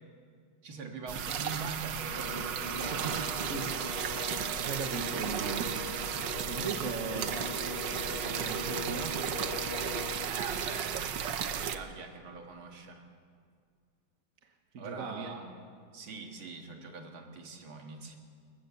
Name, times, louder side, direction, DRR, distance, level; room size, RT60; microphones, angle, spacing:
voice 1, 0.6-3.1 10.3-13.0 14.8-15.5 15.9-18.2, right 4 dB, 85° right, 3 dB, 2.7 m, -43 dB
sound 1, 1.1-11.8, right 8 dB, 65° right, 1.5 m, -34 dB
sound 2, 2.1-10.3, left 3 dB, 25° left, 1.6 m, -41 dB
voice 2, 2.9-3.8 4.1-5.9 6.5-7.4 8.4-9.2 14.4-15.4, right 5 dB, 45° right, 3 dB, 1.4 m, -39 dB
27.5 x 14.5 x 7.1 m, 2.1 s
omnidirectional pair, 2.2 m